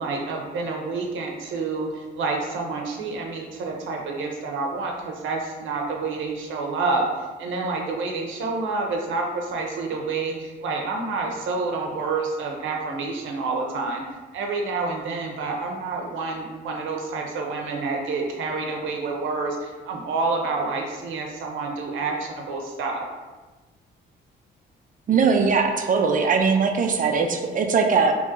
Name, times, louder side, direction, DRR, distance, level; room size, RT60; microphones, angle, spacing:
voice 1, 0.0-14.0 14.3-23.0, right 3 dB, 75° right, 1 dB, 0.7 m, -28 dB
voice 2, 25.1-28.1, right 5 dB, 40° right, 4 dB, 0.5 m, -20 dB
3.0 x 2.7 x 3.6 m, 1.3 s
cardioid pair, 90°, 20 cm